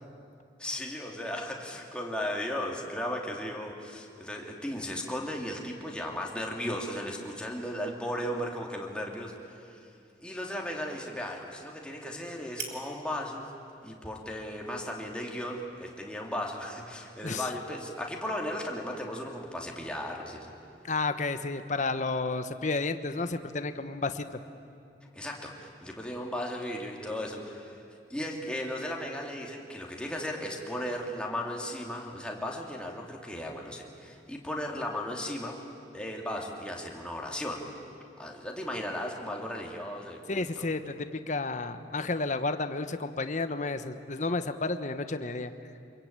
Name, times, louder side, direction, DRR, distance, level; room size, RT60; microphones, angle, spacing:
voice 1, 0.6-9.9 10.2-13.5 13.8-20.5 25.1-27.8 28.1-35.6 35.9-37.6 38.2-40.7, left 1 dB, 5° left, -1 dB, 2.9 m, -36 dB
sound 1, 8.3-16.0, right 6 dB, 65° right, 3.1 m, -50 dB
voice 2, 20.9-24.3 40.3-45.5, left 3 dB, 45° left, 9 dB, 1.1 m, -31 dB
27.0 x 22.5 x 8.9 m, 2.5 s
head